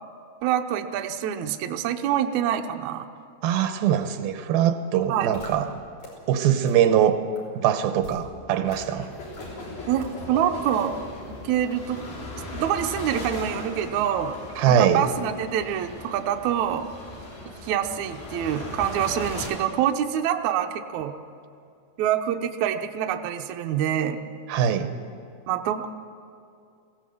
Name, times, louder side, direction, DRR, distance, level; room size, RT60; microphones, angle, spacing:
voice 1, 0.4-3.1 5.1-5.3 9.9-11.0 11.3-12.3 12.5-14.4 14.7-16.9 17.5-21.1 22.0-24.2 25.5-25.9, right 10 dB, 70° right, 5 dB, 1.9 m, -26 dB
voice 2, 3.4-5.7 6.3-7.2 7.6-9.1 14.6-15.0 24.5-24.9, right 9 dB, 85° right, 9 dB, 2.8 m, -22 dB
sound 1, 5.3-5.5 6.0-6.1 6.7-6.8 7.4-7.5 8.0-8.2 8.7-8.8 9.3-9.5 10.0-10.1 10.7-10.8, equal, 55° left, 6.4 m, -41 dB
sound 2, 8.6-19.5, left 2 dB, 80° left, 5.5 m, -38 dB
22.0 x 16.5 x 7.8 m, 2.4 s
omnidirectional pair, 4.2 m